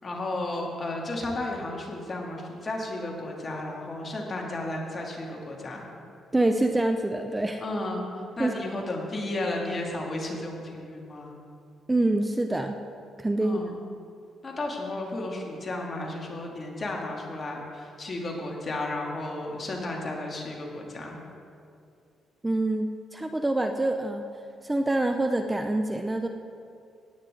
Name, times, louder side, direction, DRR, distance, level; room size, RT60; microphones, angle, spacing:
voice 1, 0.0-5.8 7.6-11.4 13.4-13.8 14.4-21.2, left 2 dB, 35° left, -1 dB, 2.4 m, -33 dB
voice 2, 6.3-7.6 8.4-8.5 11.9-12.7 13.2-13.6 22.4-24.2 24.6-26.3, right 2 dB, 15° right, 6 dB, 0.6 m, -26 dB
16.0 x 9.6 x 3.9 m, 2.4 s
cardioid pair, 90°, 0 cm